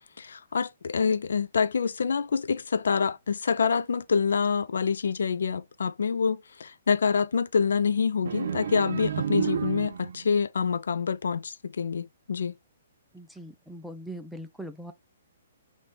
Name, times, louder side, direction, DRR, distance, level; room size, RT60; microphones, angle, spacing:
voice 1, 0.2-12.6, left 5 dB, 70° left, 0.3 m, -26 dB
sound 1, 8.3-10.3, right 8 dB, 60° right, 0.4 m, -30 dB
voice 2, 13.1-14.9, right 1 dB, ahead, 0.5 m, -41 dB
3.1 x 2.7 x 3.3 m
figure-of-eight pair, 125°, 0 cm